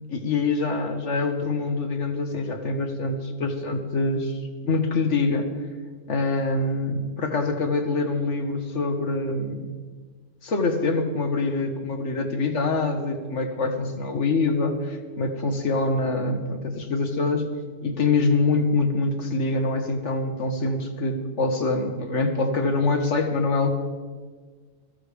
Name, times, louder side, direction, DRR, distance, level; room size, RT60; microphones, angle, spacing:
voice 1, 0.1-4.4 4.6-5.5 6.1-9.7 10.4-17.5 17.8-23.7, left 3 dB, 65° left, 5 dB, 1.7 m, -25 dB
21.0 x 14.5 x 3.4 m, 1.5 s
omnidirectional pair, 1.3 m